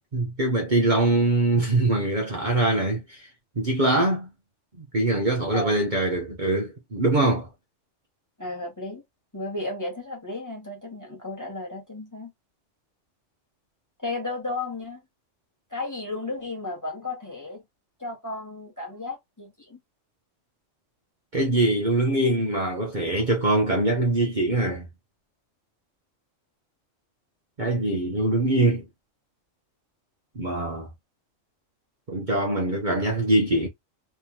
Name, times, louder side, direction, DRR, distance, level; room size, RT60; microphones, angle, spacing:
voice 1, 0.1-3.3 3.6-4.3 4.8-7.5 21.3-24.9 27.6-28.8 30.3-30.9 32.1-33.7, right 2 dB, 40° right, 1.1 m, -23 dB
voice 2, 8.4-9.0 9.3-12.3 14.0-15.0 15.7-17.6 18.0-19.8, left 2 dB, 15° left, 1.6 m, -34 dB
3.5 x 3.3 x 2.9 m
omnidirectional pair, 1.3 m